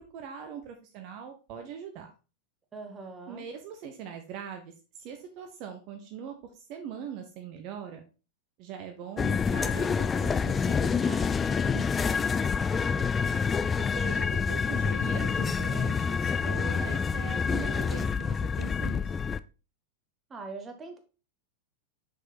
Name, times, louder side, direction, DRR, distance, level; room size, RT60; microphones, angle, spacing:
voice 1, 0.0-2.1 3.3-8.0 8.6-11.9 13.7-19.1, right 7 dB, 40° right, 4 dB, 0.9 m, -41 dB
voice 2, 2.7-3.5 12.7-13.7 20.3-21.0, right 4 dB, 20° right, 6 dB, 1.3 m, -43 dB
sound 1, 9.2-19.4, left 6 dB, 20° left, 0.3 m, -27 dB
6.0 x 4.9 x 4.1 m, 0.33 s
figure-of-eight pair, 90°, 0 cm